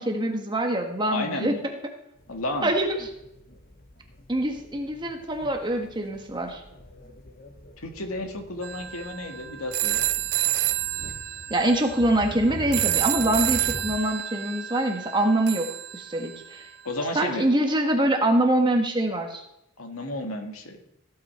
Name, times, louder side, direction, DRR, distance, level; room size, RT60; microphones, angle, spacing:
voice 1, 0.0-1.6 2.6-3.0 4.3-6.6 11.5-15.7 15.9-16.7 17.1-19.4, right 1 dB, 20° right, 3 dB, 1.6 m, -24 dB
voice 2, 1.1-1.7 2.3-2.7 7.8-10.1 16.8-17.5 19.8-20.8, left 1 dB, 80° left, 4 dB, 1.9 m, -32 dB
sound 1, 2.2-14.0, left 1 dB, 45° left, 1.5 m, -43 dB
sound 2, 8.6-16.7, right 15 dB, 50° right, 0.4 m, -29 dB
16.5 x 8.7 x 4.4 m, 0.82 s
head